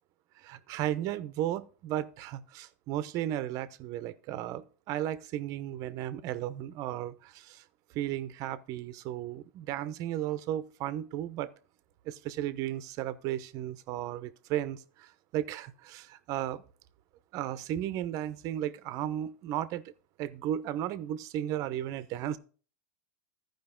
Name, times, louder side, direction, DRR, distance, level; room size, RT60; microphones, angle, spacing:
voice 1, 0.4-7.6 7.9-11.5 12.0-16.6 17.3-19.8 20.2-22.4, right 12 dB, 45° right, 0.8 m, -34 dB
14.0 x 5.3 x 3.8 m
supercardioid pair, 140°, 8 cm